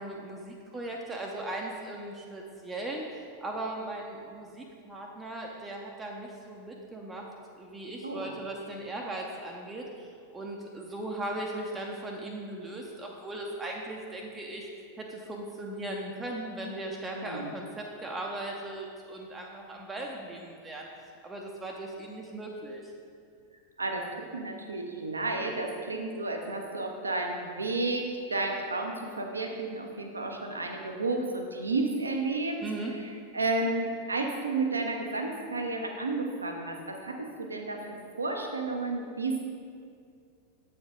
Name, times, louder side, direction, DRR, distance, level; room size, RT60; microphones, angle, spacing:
voice 1, 0.0-3.1 3.4-7.3 7.6-14.7 15.0-20.9 21.2-22.8 32.6-32.9, right 1 dB, 15° right, -1 dB, 0.6 m, -38 dB
voice 2, 17.1-17.5 23.8-32.6 33.0-39.4, right 2 dB, 75° right, 3 dB, 0.6 m, -32 dB
7.6 x 4.4 x 3.6 m, 2.3 s
figure-of-eight pair, 90°, 0 cm